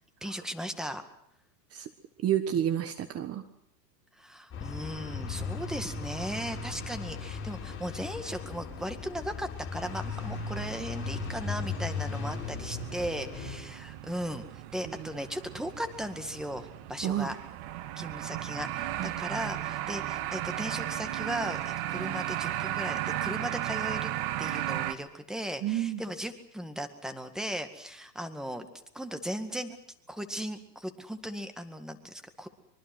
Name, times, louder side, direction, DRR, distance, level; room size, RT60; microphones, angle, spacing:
voice 1, 0.2-1.0 4.2-14.5 14.7-17.4 18.0-24.1 24.4-28.7 28.9-29.8 30.1-32.5, equal, ahead, 8 dB, 2.0 m, -37 dB
voice 2, 2.2-3.4 17.0-17.3 19.0-19.2 25.6-26.0, right 11 dB, 30° right, 9 dB, 1.4 m, -29 dB
sound 1, 4.5-13.6, left 4 dB, 25° left, 7.8 m, -37 dB
sound 2, 9.8-24.9, right 13 dB, 50° right, 1.9 m, -36 dB
24.5 x 23.5 x 6.2 m, 0.73 s
hypercardioid pair, 105°, 48 cm